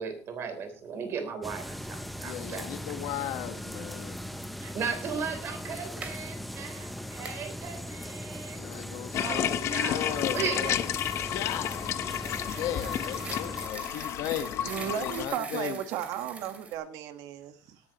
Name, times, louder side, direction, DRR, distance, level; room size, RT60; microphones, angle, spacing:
voice 1, 0.0-2.7 4.6-8.7 9.2-10.9, right 6 dB, 45° right, 3.5 m, -36 dB
sound 1, 1.4-13.7, equal, ahead, 0.7 m, -39 dB
voice 2, 2.1-4.3 8.5-10.9 11.2-12.0 12.6-15.8, left 11 dB, 85° left, 1.4 m, -36 dB
sound 2, 5.8-6.2 7.2-7.4 9.6-16.7, right 4 dB, 20° right, 2.6 m, -44 dB
sound 3, 9.1-15.3, left 11 dB, 50° left, 0.8 m, -32 dB
voice 3, 14.6-17.8, right 10 dB, 85° right, 1.5 m, -35 dB
18.0 x 12.0 x 3.0 m
cardioid pair, 170°, 6 cm